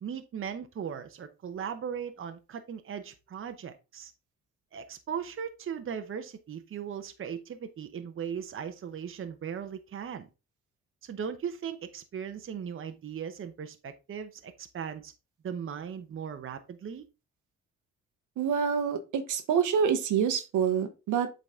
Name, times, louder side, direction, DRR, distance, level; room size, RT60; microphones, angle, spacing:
voice 1, 0.0-4.1 4.7-10.3 11.0-15.1 15.4-17.0, right 7 dB, 45° right, 0.9 m, -38 dB
voice 2, 18.4-21.3, right 7 dB, 75° right, 1.1 m, -27 dB
7.7 x 4.0 x 3.7 m
cardioid pair, 90°, 30 cm